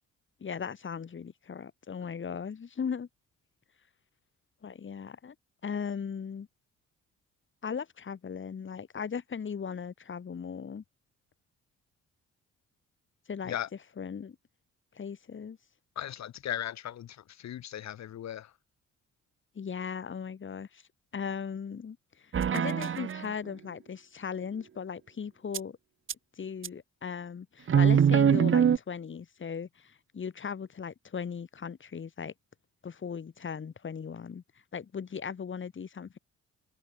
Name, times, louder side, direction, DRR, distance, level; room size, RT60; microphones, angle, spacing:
voice 1, 0.4-3.1 4.6-5.3 5.6-6.5 7.6-10.8 13.3-13.6 14.0-14.4 14.9-15.6 19.5-20.8 21.1-25.8 26.4-32.3 32.8-34.4 34.7-36.2, left 6 dB, 40° left, 2.9 m, -38 dB
voice 2, 15.9-18.5, left 11 dB, 65° left, 1.6 m, -37 dB
sound 1, 22.3-23.3 25.5-25.6 26.1-26.2 26.6-26.7 27.7-28.8, right 8 dB, 40° right, 1.2 m, -23 dB
cardioid pair, 90°, 30 cm